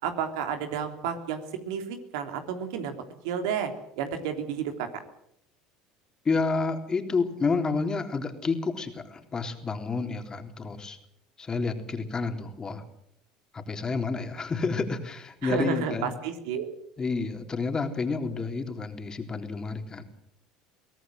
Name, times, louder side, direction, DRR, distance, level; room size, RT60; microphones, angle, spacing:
voice 1, 0.0-2.9 3.2-3.7 4.0-4.9 15.4-16.7, right 7 dB, 75° right, 6 dB, 3.2 m, -31 dB
voice 2, 6.3-11.0 11.4-12.8 13.5-16.1 17.0-20.0, left 4 dB, 25° left, 5 dB, 3.6 m, -30 dB
23.5 x 17.5 x 7.9 m, 0.74 s
hypercardioid pair, 80°, 3 cm